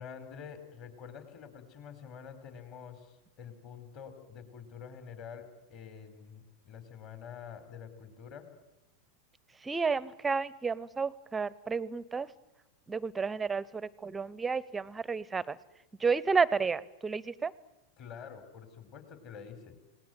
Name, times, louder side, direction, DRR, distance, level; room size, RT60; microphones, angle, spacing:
voice 1, 0.0-8.5 18.0-19.9, left 7 dB, 40° left, 10 dB, 4.1 m, -47 dB
voice 2, 9.6-12.3 12.9-15.6 16.0-17.5, right 5 dB, 15° right, 21 dB, 0.8 m, -31 dB
28.5 x 19.0 x 9.3 m, 1.0 s
figure-of-eight pair, 90°, 0 cm